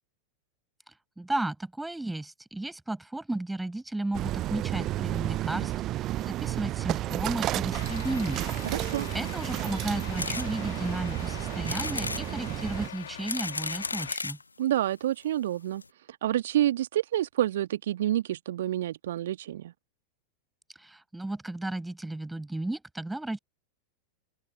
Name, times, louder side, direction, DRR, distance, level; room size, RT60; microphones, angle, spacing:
voice 1, 0.9-8.4 9.1-14.4 20.7-23.4, right 2 dB, 5° right, 6.4 m, -34 dB
sound 1, 4.1-12.9, right 14 dB, 35° right, 0.6 m, -32 dB
Truck, 7.7-14.2, left 9 dB, 65° left, 2.0 m, -43 dB
voice 2, 8.6-9.1 14.6-15.8 16.2-19.7, right 12 dB, 60° right, 1.7 m, -28 dB
sound 2, 10.2-10.5 11.0-11.1 11.6-12.2 13.0-14.4 15.2-15.3 15.5-15.6 15.8-15.9, left 3 dB, 80° left, 1.8 m, -33 dB
open air
figure-of-eight pair, 90°, 0 cm